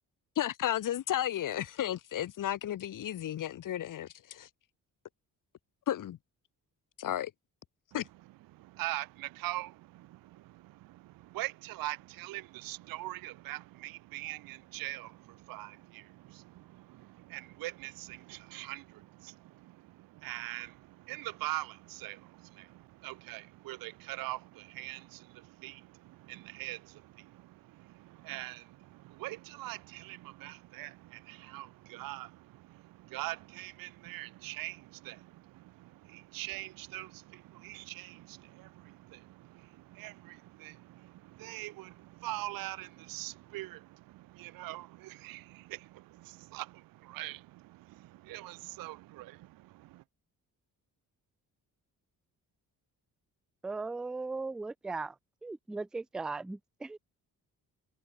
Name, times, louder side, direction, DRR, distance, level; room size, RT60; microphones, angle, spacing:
voice 1, 0.4-4.5 5.9-6.2 7.0-7.3 7.9-8.1, left 11 dB, 60° left, 1.1 m, -33 dB
voice 2, 8.5-50.0, right 18 dB, 70° right, 0.5 m, -43 dB
voice 3, 53.6-55.2 55.4-57.0, right 3 dB, ahead, 0.3 m, -38 dB
cardioid pair, 130°, 36 cm